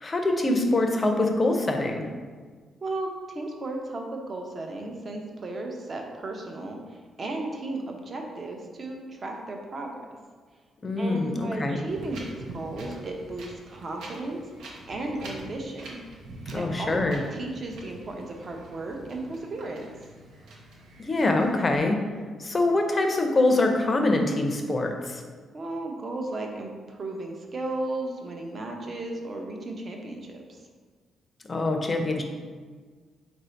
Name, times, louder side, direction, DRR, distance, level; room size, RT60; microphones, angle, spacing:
voice 1, 0.0-2.1 10.8-11.8 16.5-17.2 21.0-22.0 22.4-25.2 31.5-32.2, left 2 dB, 30° left, 4 dB, 0.5 m, -24 dB
voice 2, 2.8-10.1 11.0-16.0 16.5-19.9 25.5-30.6, right 2 dB, 40° right, 2 dB, 0.7 m, -35 dB
Wind, 11.9-21.8, right 2 dB, 90° right, 0.8 m, -44 dB
4.1 x 2.6 x 4.4 m, 1.5 s
cardioid pair, 110°, 0 cm